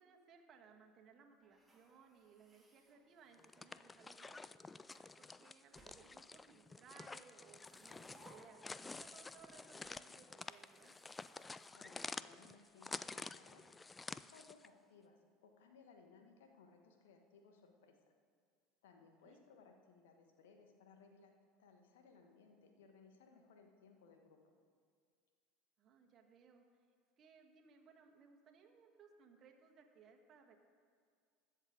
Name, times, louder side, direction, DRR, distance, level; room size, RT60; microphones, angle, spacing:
voice 1, 0.0-4.5 5.2-11.0 19.0-19.5 25.8-26.6 27.2-30.6, right 6 dB, 40° right, 2 dB, 1.7 m, -64 dB
sound 1, 1.4-3.7 4.4-5.1 5.7-6.7 7.4-9.5 9.8-9.9 10.3-12.4, right 1 dB, 10° right, 2.4 m, -68 dB
sound 2, 3.3-14.7, left 3 dB, 15° left, 0.3 m, -50 dB
voice 2, 11.7-18.1 18.8-21.3 21.6-24.6, left 4 dB, 70° left, 4 dB, 1.5 m, -64 dB
21.0 x 7.5 x 3.8 m, 2.1 s
figure-of-eight pair, 70°, 0 cm